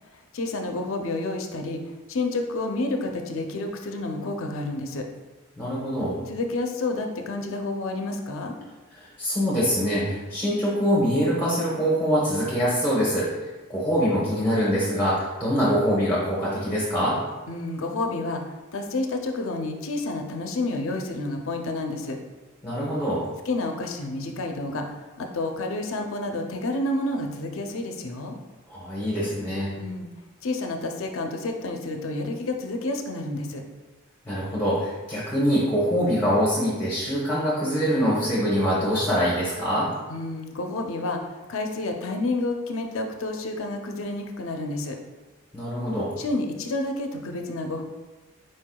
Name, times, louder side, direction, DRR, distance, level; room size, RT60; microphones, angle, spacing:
voice 1, 0.1-1.8 2.1-5.0 6.3-8.6 17.5-18.4 18.7-22.2 23.5-28.4 29.8-30.1 30.4-33.6 40.1-45.0 46.2-47.8, left 2 dB, 65° left, 4 dB, 0.5 m, -29 dB
voice 2, 5.6-6.2 9.2-13.3 13.7-17.2 22.6-23.2 28.7-29.7 34.3-39.9 45.5-46.1, equal, 10° left, -8 dB, 0.9 m, -24 dB
4.5 x 4.5 x 2.3 m, 1.2 s
head